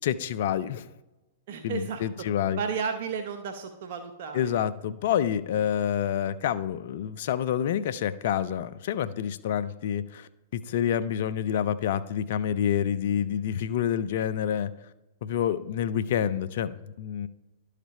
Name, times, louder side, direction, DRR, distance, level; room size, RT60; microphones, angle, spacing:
voice 1, 0.0-0.9 1.6-2.6 4.3-14.9 15.2-17.3, left 9 dB, 60° left, 0.4 m, -28 dB
voice 2, 1.5-2.0 2.6-4.4, right 6 dB, 55° right, 0.8 m, -33 dB
11.5 x 5.0 x 4.2 m
hypercardioid pair, 110°, 0 cm